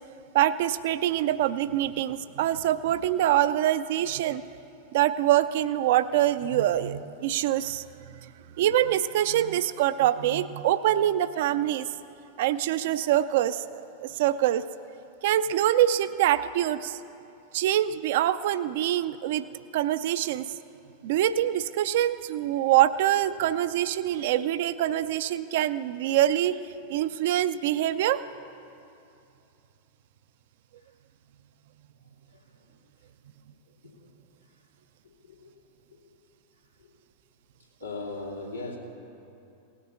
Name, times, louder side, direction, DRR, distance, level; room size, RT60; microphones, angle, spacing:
voice 1, 0.3-4.4 4.9-7.8 8.6-11.9 12.4-14.6 15.2-17.0 17.5-19.5 19.7-20.5 21.0-26.6 26.9-28.2, right 12 dB, 55° right, 13 dB, 0.4 m, -24 dB
voice 2, 32.3-32.8 33.8-34.1 34.5-34.6 35.0-35.5 35.9-36.2 36.8-36.9 37.6-38.8, left 2 dB, 85° left, -6 dB, 2.5 m, -40 dB
18.0 x 8.3 x 5.9 m, 2.7 s
figure-of-eight pair, 90°, 0 cm